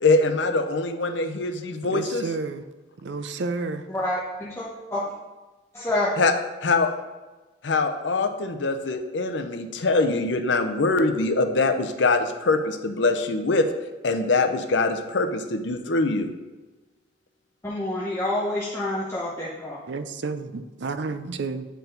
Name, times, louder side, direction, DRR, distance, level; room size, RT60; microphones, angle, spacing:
voice 1, 0.0-2.2 6.2-6.3 6.6-6.9 7.6-13.7 14.0-16.3, left 3 dB, 70° left, 8 dB, 0.7 m, -23 dB
voice 2, 1.8-2.6 3.0-3.9 19.9-21.7, right 3 dB, 65° right, 10 dB, 0.5 m, -31 dB
voice 3, 3.9-5.1 5.7-6.1 17.6-19.8, left 1 dB, 15° left, -7 dB, 0.9 m, -28 dB
9.1 x 4.6 x 3.9 m, 1.2 s
head